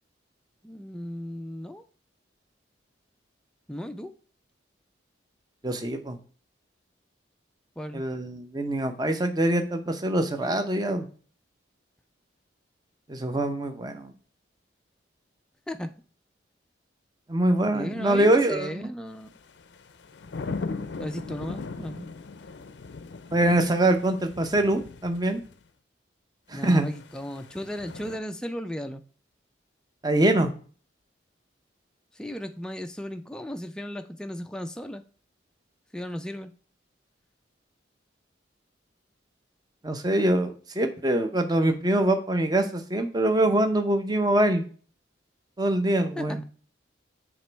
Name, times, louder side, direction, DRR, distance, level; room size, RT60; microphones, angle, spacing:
voice 1, 0.6-1.8 3.7-4.1 7.8-8.0 15.7-15.9 17.7-19.3 21.0-22.1 26.5-29.0 32.1-35.0 35.9-36.5 46.2-46.4, equal, 5° left, 0.3 m, -35 dB
voice 2, 5.6-6.2 7.9-11.1 13.1-14.1 17.3-18.9 23.3-25.4 26.5-26.9 30.0-30.5 39.8-44.6 45.6-46.4, right 1 dB, 20° right, 0.7 m, -24 dB
sound 1, 19.3-25.5 26.6-28.2, left 4 dB, 65° left, 0.5 m, -39 dB
7.3 x 3.0 x 4.5 m
head